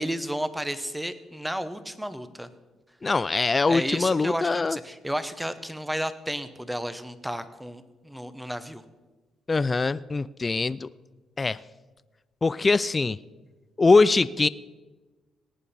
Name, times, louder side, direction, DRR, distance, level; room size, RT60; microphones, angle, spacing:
voice 1, 0.0-2.5 3.7-8.8, equal, 5° right, 12 dB, 0.9 m, -32 dB
voice 2, 3.0-4.8 9.5-10.9 11.4-11.6 12.4-13.2 13.8-14.5, left 3 dB, 25° left, 17 dB, 0.3 m, -22 dB
18.0 x 9.1 x 4.3 m, 1.2 s
cardioid pair, 90°, 0 cm